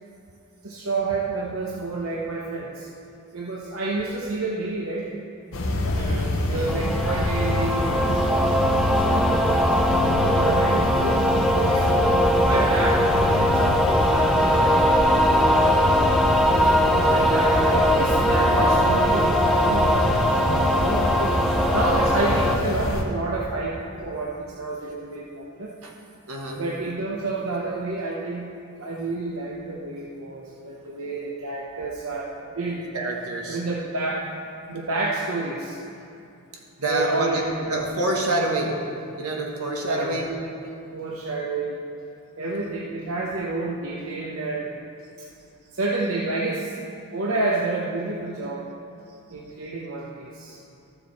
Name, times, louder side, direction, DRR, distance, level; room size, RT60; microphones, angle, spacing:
voice 1, 0.6-2.9 3.3-5.1 6.5-9.5 10.0-11.9 12.5-16.0 16.8-21.4 21.7-25.7 26.6-28.5 28.8-32.3 32.6-32.9 33.5-34.3 34.7-35.8 36.9-37.8 39.8-40.2 40.9-41.8 42.4-44.7 45.2-45.3 45.7-46.8 47.1-48.6 49.3-50.6, right 2 dB, 65° right, -3 dB, 0.9 m, -29 dB
sound 1, 5.5-23.0, left 1 dB, 65° left, 1.0 m, -26 dB
voice 2, 5.9-6.8 16.4-17.3 25.8-25.9 26.3-26.6 32.9-33.6 36.8-38.9 39.2-40.5, right 2 dB, 85° right, -1 dB, 1.6 m, -28 dB
sound 2, 6.7-22.6, equal, ahead, 0.4 m, -21 dB
13.0 x 6.9 x 4.2 m, 2.7 s
head